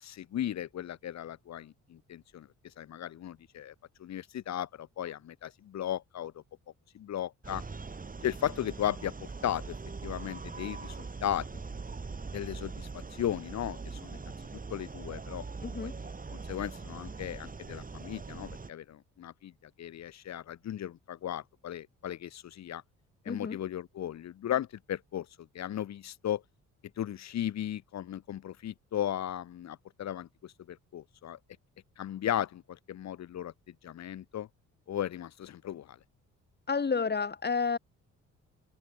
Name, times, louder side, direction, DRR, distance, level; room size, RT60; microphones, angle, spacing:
voice 1, 0.0-2.5 2.8-3.7 4.0-6.3 6.9-7.6 8.2-9.1 9.4-9.8 10.0-11.0 11.2-11.5 12.3-14.2 14.7-15.4 15.8-15.9 16.3-19.5 19.8-22.8 23.2-25.3 25.5-26.4 27.0-31.4 32.0-34.5 34.9-36.0, left 11 dB, 60° left, 1.5 m, -36 dB
sound 1, 7.4-18.7, right 4 dB, 30° right, 6.1 m, -42 dB
voice 2, 15.6-16.0 23.3-23.6 36.7-37.8, left 5 dB, 35° left, 4.6 m, -30 dB
cardioid pair, 90°, 30 cm